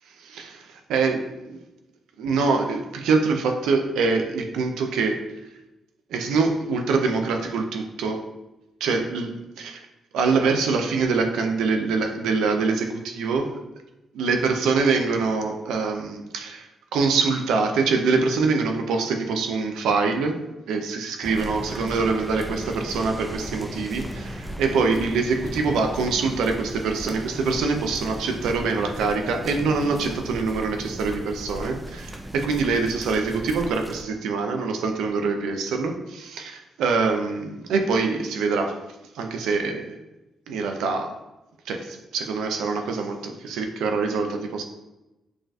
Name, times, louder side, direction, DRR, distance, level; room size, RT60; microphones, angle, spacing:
voice 1, 0.2-1.6 2.2-5.2 6.1-8.2 8.8-9.9 10.1-13.5 14.1-20.4 20.7-38.8 39.1-40.0 40.5-41.1 41.7-44.6, right 4 dB, 90° right, 4 dB, 0.5 m, -24 dB
sound 1, 21.2-34.0, equal, 5° right, 0.4 m, -36 dB
6.1 x 2.5 x 2.3 m, 0.97 s
cardioid pair, 75°, 0 cm